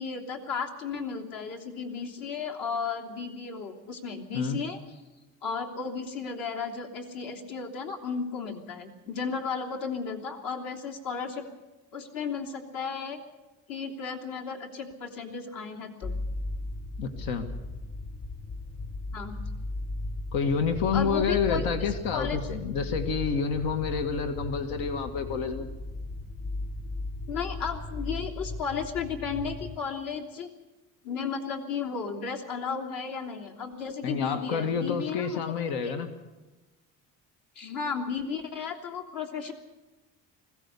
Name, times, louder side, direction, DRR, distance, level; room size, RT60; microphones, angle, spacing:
voice 1, 0.0-5.0 5.4-11.5 11.9-13.2 13.7-16.1 19.1-19.4 20.9-21.6 22.1-22.4 27.3-30.5 31.0-35.4 35.8-35.9 37.5-39.5, left 6 dB, 70° left, 1 dB, 3.2 m, -34 dB
sound 1, 16.0-29.8, left 2 dB, 45° left, 3.2 m, -36 dB
voice 2, 17.0-17.5 20.3-25.7 34.0-36.1, left 5 dB, 90° left, 7 dB, 1.9 m, -28 dB
20.5 x 16.5 x 8.4 m, 1.1 s
cardioid pair, 125°, 35 cm